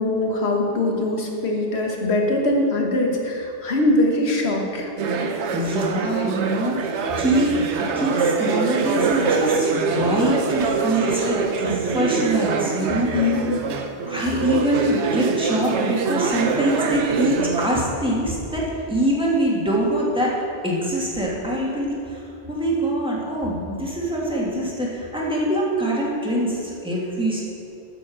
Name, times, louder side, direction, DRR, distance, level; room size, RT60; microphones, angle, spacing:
voice 1, 0.0-4.9 12.9-13.6, left 2 dB, 70° left, 1 dB, 1.5 m, -22 dB
sound 1, 5.0-17.8, right 4 dB, 90° right, 1.0 m, -24 dB
voice 2, 5.5-13.2 14.1-20.4 20.6-22.2 22.5-27.4, right 1 dB, 5° right, -5 dB, 1.8 m, -24 dB
7.9 x 7.0 x 6.3 m, 2.7 s
omnidirectional pair, 1.1 m